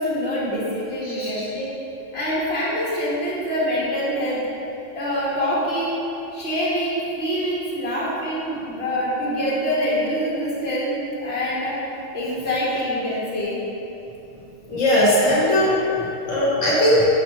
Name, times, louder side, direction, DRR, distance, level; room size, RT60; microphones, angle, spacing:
voice 1, 0.0-1.7 2.1-4.7 4.9-5.9 6.3-11.8 12.1-13.6, equal, 55° left, -8 dB, 1.7 m, -25 dB
voice 2, 1.0-1.5 14.7-15.8 16.3-17.1, left 1 dB, 85° left, -7 dB, 1.6 m, -19 dB
5.2 x 4.8 x 5.1 m, 3.0 s
omnidirectional pair, 1.3 m